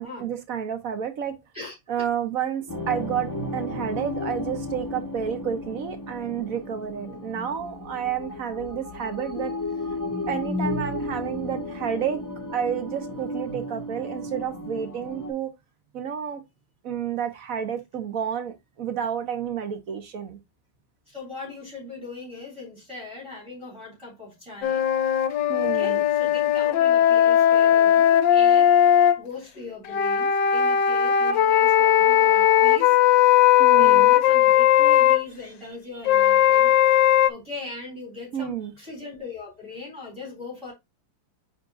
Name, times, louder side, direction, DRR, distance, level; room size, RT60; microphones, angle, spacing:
voice 1, 0.0-1.3 1.9-9.6 10.3-12.2 12.5-15.5 15.9-16.4 16.8-20.4 25.5-26.0 33.6-34.1 38.3-38.7, right 8 dB, 50° right, 1.2 m, -30 dB
sound 1, 2.7-15.3, left 1 dB, 10° left, 1.3 m, -33 dB
voice 2, 21.1-24.8 25.6-36.8 37.3-40.7, left 3 dB, 15° right, 3.9 m, -40 dB
sound 2, 24.6-29.2 29.9-35.2 36.1-37.3, left 10 dB, 75° left, 1.3 m, -18 dB
9.5 x 3.9 x 2.5 m
omnidirectional pair, 2.2 m